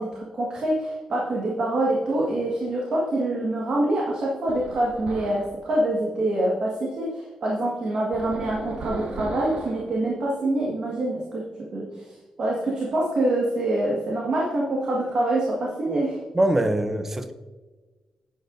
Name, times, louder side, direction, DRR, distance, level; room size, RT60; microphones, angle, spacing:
voice 1, 0.0-11.4 11.7-12.0 12.4-16.2, right 1 dB, 50° right, -3 dB, 1.7 m, -25 dB
sound 1, 4.5-5.5 8.1-9.9, right 2 dB, 80° right, 1.6 m, -35 dB
voice 2, 16.3-17.3, right 1 dB, 15° right, 9 dB, 0.6 m, -23 dB
11.0 x 9.0 x 2.6 m, 1.3 s
wide cardioid pair, 175°, 2 cm